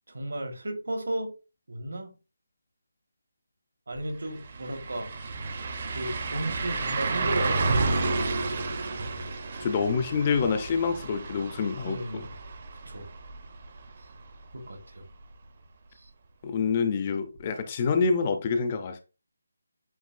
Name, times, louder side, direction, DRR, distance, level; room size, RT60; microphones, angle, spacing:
voice 1, 0.1-1.3 1.7-2.1 3.9-5.1 5.9-7.9 11.9-12.3 12.8-13.1 14.5-15.0 15.9-16.1, right 1 dB, 70° right, 1.4 m, -34 dB
sound 1, 3.9-4.0 4.3-14.1 14.5-14.6 17.4-17.5, right 3 dB, 35° right, 0.6 m, -31 dB
voice 2, 9.6-12.2 16.4-19.0, left 5 dB, 20° left, 0.4 m, -27 dB
7.9 x 2.7 x 2.5 m
figure-of-eight pair, 175°, 0 cm